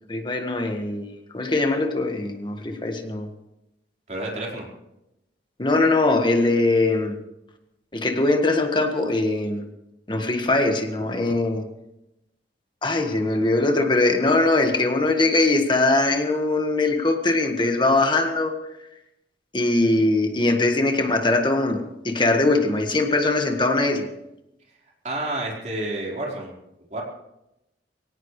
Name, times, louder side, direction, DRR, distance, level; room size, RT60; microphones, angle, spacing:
voice 1, 0.1-3.3 5.6-7.2 7.9-9.7 10.1-11.6 12.8-18.6 19.5-24.1, left 2 dB, 25° left, 4 dB, 1.6 m, -21 dB
voice 2, 4.1-4.7 25.0-26.5 26.9-27.0, right 1 dB, 40° right, -2 dB, 4.4 m, -29 dB
22.0 x 18.0 x 3.3 m, 0.87 s
head